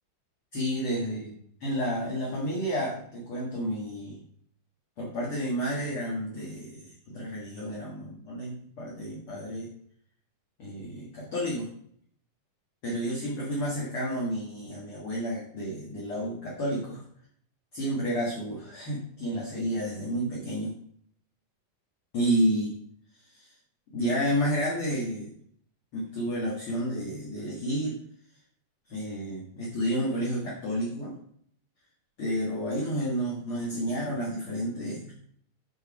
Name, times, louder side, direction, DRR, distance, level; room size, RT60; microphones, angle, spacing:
voice 1, 0.5-1.3 1.6-4.2 5.0-9.7 10.6-11.7 12.8-17.0 17.7-20.8 22.1-22.7 23.3-23.5 23.9-25.3 25.9-28.0 28.9-31.2 32.2-35.1, equal, 50° left, -5 dB, 1.8 m, -30 dB
8.8 x 4.6 x 4.8 m, 0.64 s
omnidirectional pair, 4.5 m